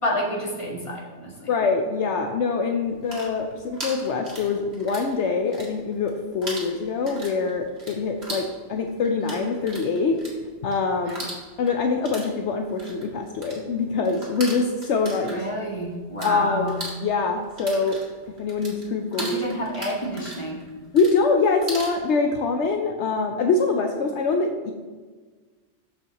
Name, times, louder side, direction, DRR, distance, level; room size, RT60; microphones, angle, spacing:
voice 1, 0.0-1.5 11.0-11.1 15.3-16.8 19.2-20.7, equal, 25° left, -3 dB, 1.7 m, -29 dB
voice 2, 1.5-10.2 10.6-11.2 11.6-15.4 16.2-18.0 18.4-19.5 20.9-24.7, left 4 dB, 75° left, 4 dB, 0.9 m, -24 dB
sound 1, 2.9-5.1 5.4-6.1 6.4-16.3 16.6-22.0, right 1 dB, 60° right, 2.3 m, -38 dB
13.5 x 5.5 x 3.0 m, 1.4 s
omnidirectional pair, 1.2 m